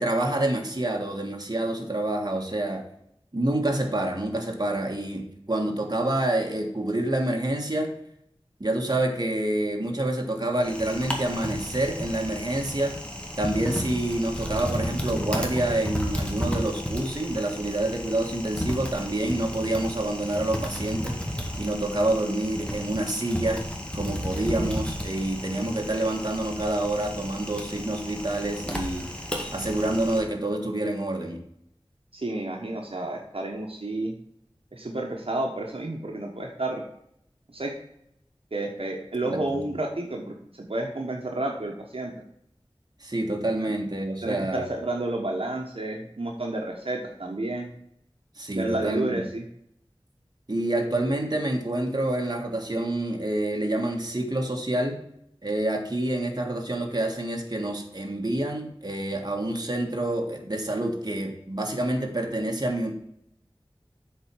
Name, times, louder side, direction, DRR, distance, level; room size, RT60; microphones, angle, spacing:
voice 1, 0.0-2.9 3.3-7.9 8.6-13.0 13.4-21.2 21.6-23.6 23.9-29.1 29.5-31.4 39.2-39.4 43.0-44.7 48.4-49.2 50.5-55.0 55.4-62.9, right 1 dB, 45° right, 2 dB, 1.7 m, -27 dB
Typing, 10.6-30.2, equal, 10° left, 1.9 m, -33 dB
voice 2, 32.1-34.1 34.7-36.8 37.5-37.7 38.5-42.1 44.2-47.7 48.5-49.4, right 2 dB, 70° right, 1 dB, 1.2 m, -30 dB
7.8 x 4.5 x 6.1 m, 0.74 s
wide cardioid pair, 45°, 10 cm